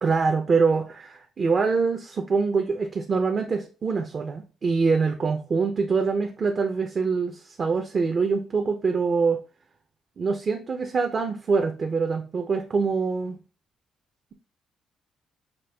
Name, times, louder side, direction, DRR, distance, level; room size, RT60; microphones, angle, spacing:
voice 1, 0.0-9.4 10.2-13.4, right 4 dB, 45° right, 4 dB, 0.5 m, -24 dB
5.1 x 2.3 x 3.3 m, 0.34 s
cardioid pair, 90°, 0 cm